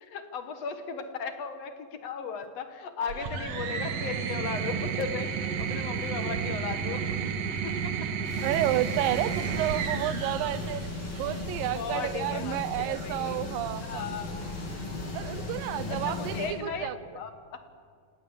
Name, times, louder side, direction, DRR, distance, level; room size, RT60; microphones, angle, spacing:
voice 1, 0.0-7.1 7.6-7.9 11.8-13.5 13.8-14.4 15.9-17.6, left 6 dB, 60° left, 8 dB, 2.0 m, -36 dB
sound 1, 3.1-11.5 12.7-13.3, right 6 dB, 60° right, 2.1 m, -32 dB
sound 2, 8.2-16.5, left 2 dB, 85° left, 7.8 m, -36 dB
voice 2, 8.4-10.8 11.2-14.1 15.1-17.0, right 14 dB, 80° right, 15 dB, 2.4 m, -31 dB
28.0 x 18.0 x 7.3 m, 2.2 s
omnidirectional pair, 4.1 m